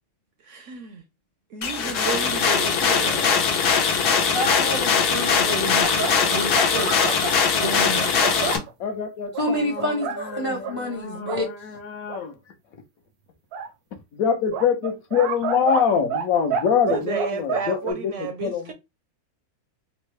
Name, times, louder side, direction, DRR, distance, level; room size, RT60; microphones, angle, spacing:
voice 1, 0.4-1.0 1.5-3.5 16.9-18.7, right 7 dB, 70° right, 0.8 m, -32 dB
sound 1, 1.6-8.6, left 6 dB, 90° left, 1.3 m, -21 dB
voice 2, 4.3-6.9 7.5-8.0 9.4-11.5, equal, 35° left, 0.3 m, -28 dB
sound 2, 5.8-8.7 9.3-10.2 10.6-10.8 11.2-11.4 12.1-12.2 13.5-13.7 14.5-16.3 16.5-17.9, right 5 dB, 85° right, 1.1 m, -29 dB
voice 3, 8.8-12.3 14.1-18.7, left 7 dB, 70° left, 1.1 m, -25 dB
3.6 x 2.1 x 3.0 m
omnidirectional pair, 1.6 m